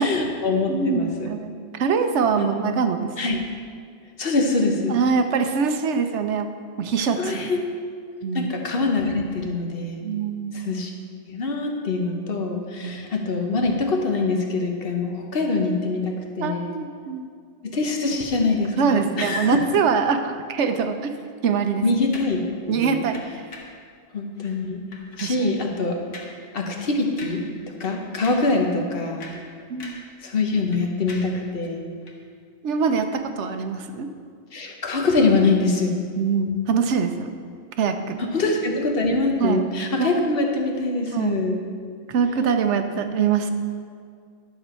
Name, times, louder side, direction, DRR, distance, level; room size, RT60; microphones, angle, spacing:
voice 1, 0.0-1.3 2.4-2.5 3.2-3.4 4.2-5.0 7.2-7.6 8.3-10.1 10.5-10.9 11.3-16.7 17.6-19.6 21.8-22.4 22.7-23.0 24.1-24.8 25.2-26.0 26.5-27.5 27.8-29.3 30.2-31.9 34.5-36.0 38.2-41.6, left 3 dB, 50° left, 2 dB, 1.2 m, -24 dB
voice 2, 0.7-3.1 4.9-7.5 8.2-8.5 10.0-10.5 12.8-13.0 16.4-17.3 18.8-21.1 21.4-21.8 22.7-23.4 25.2-25.6 27.6-27.7 29.7-30.0 32.6-34.1 36.2-37.3 37.8-38.2 39.4-39.7 40.0-40.3 41.1-41.4 42.1-43.5, right 5 dB, 70° right, 7 dB, 1.0 m, -24 dB
sound 1, 22.1-22.4 23.1-23.8 24.4-24.6 24.9-25.5 26.1-26.4 26.7-26.9 27.2-27.5 27.8-28.6 29.0-30.2 30.4-31.4 32.0-32.2, left 3 dB, 75° left, 1.5 m, -42 dB
12.0 x 7.1 x 4.4 m, 2.2 s
omnidirectional pair, 1.3 m